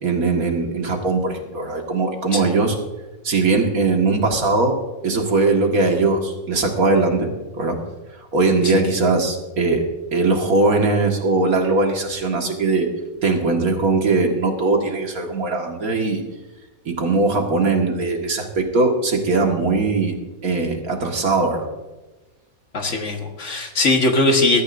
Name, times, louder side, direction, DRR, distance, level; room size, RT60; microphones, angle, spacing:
voice 1, 0.0-2.8 3.2-4.7 5.0-7.8 8.3-12.9 13.2-16.2 16.9-20.1 20.4-21.7, right 3 dB, 70° right, 2 dB, 2.2 m, -20 dB
voice 2, 22.7-24.6, left 2 dB, 50° left, 3 dB, 1.7 m, -20 dB
20.5 x 14.0 x 2.6 m, 1.1 s
omnidirectional pair, 1.6 m